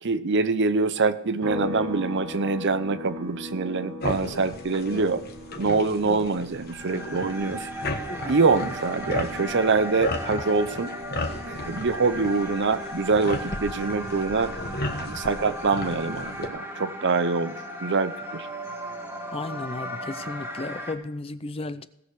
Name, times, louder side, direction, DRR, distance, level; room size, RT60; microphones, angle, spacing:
voice 1, 0.0-5.2 5.6-7.7 8.3-10.9 11.4-14.5 15.0-17.5 17.8-18.5, right 4 dB, 55° right, 13 dB, 0.7 m, -25 dB
sound 1, 1.4-15.0 15.3-17.5, left 2 dB, 85° right, 2.2 m, -41 dB
sound 2, 4.0-16.5, left 2 dB, 45° left, 1.3 m, -35 dB
sound 3, 6.7-21.0, equal, 10° right, 1.6 m, -36 dB
voice 2, 19.3-21.9, left 2 dB, 25° left, 13 dB, 0.5 m, -34 dB
18.0 x 6.4 x 4.9 m, 0.82 s
head